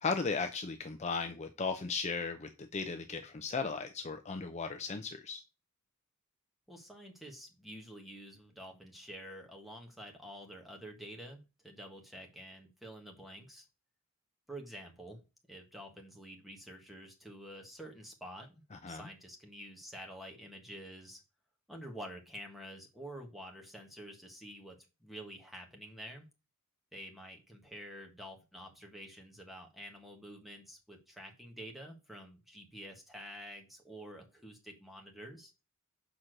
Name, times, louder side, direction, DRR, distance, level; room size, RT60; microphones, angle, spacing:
voice 1, 0.0-5.4 18.8-19.0, left 4 dB, 30° left, 7 dB, 0.6 m, -36 dB
voice 2, 6.7-13.6 14.5-15.2 15.5-21.2 21.7-26.3 26.9-35.5, equal, ahead, 2 dB, 1.5 m, -49 dB
6.1 x 4.3 x 6.4 m, 0.29 s
head